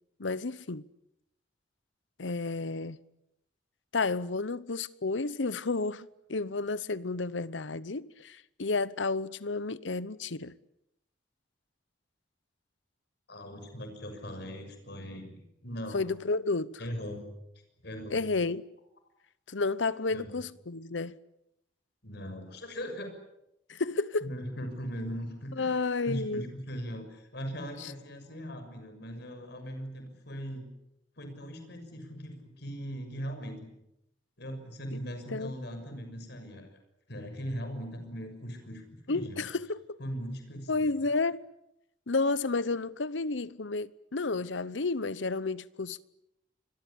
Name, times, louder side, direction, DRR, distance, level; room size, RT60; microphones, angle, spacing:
voice 1, 0.2-0.8 2.2-3.0 3.9-10.6 15.9-16.8 18.1-18.6 19.5-21.2 23.7-24.3 25.6-26.5 27.8-27.9 34.9-35.0 35.3-35.5 39.1-40.0 40.7-41.5 42.1-46.0, left 3 dB, 80° left, 0.9 m, -31 dB
voice 2, 13.3-16.0 16.8-17.3 17.8-18.2 20.1-20.3 22.0-23.1 24.2-25.7 26.1-30.7 31.2-33.7 34.4-36.7 37.1-39.5 40.0-41.1, equal, 60° left, 6.5 m, -39 dB
27.0 x 22.5 x 8.6 m
head